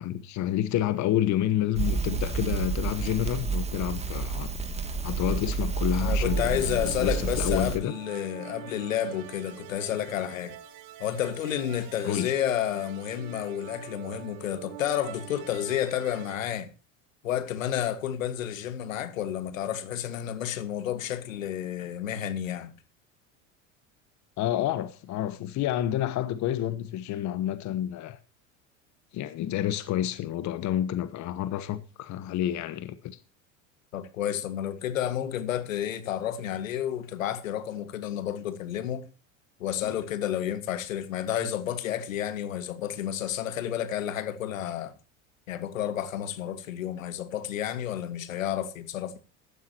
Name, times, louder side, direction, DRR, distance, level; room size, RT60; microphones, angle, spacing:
voice 1, 0.0-4.5 5.0-7.9 12.0-12.3 24.4-28.2 29.1-33.2, left 12 dB, 45° left, 1.2 m, -29 dB
Crackle, 1.7-7.8, right 4 dB, 15° right, 2.6 m, -29 dB
voice 2, 6.0-10.6 11.0-16.7 17.2-22.7 33.9-39.0 39.6-44.9 45.5-49.2, left 10 dB, 80° left, 2.0 m, -31 dB
sound 1, 6.2-16.4, right 13 dB, 60° right, 1.6 m, -45 dB
15.5 x 12.5 x 3.0 m
hypercardioid pair, 85°, 39 cm